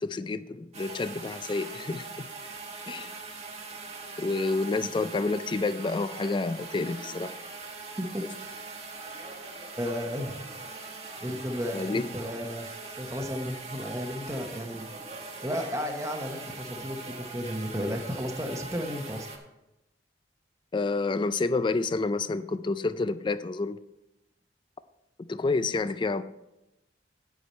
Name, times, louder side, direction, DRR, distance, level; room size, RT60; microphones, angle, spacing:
voice 1, 0.0-2.3 2.8-3.1 4.2-7.3 11.7-12.1 20.7-23.8 25.2-26.2, left 3 dB, 25° left, 0.3 m, -29 dB
sound 1, 0.7-19.4, right 3 dB, 35° right, 1.3 m, -41 dB
voice 2, 8.0-8.3 9.8-10.4 11.2-12.7 13.0-14.9 15.4-19.3, equal, 15° right, 0.9 m, -33 dB
9.8 x 8.2 x 4.3 m
head